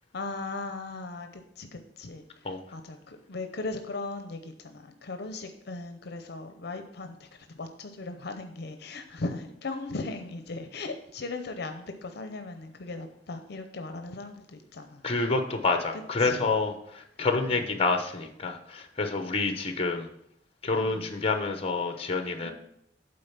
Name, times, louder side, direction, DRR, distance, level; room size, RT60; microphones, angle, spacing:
voice 1, 0.1-2.2 2.7-7.3 7.5-15.0 15.9-16.5 17.5-17.6 19.4-19.6 20.8-21.1 22.4-22.5, left 3 dB, 65° left, 7 dB, 0.7 m, -38 dB
voice 2, 15.0-16.7 17.2-20.1 20.6-22.5, left 3 dB, 35° left, 6 dB, 0.8 m, -28 dB
8.6 x 3.9 x 5.8 m, 0.75 s
head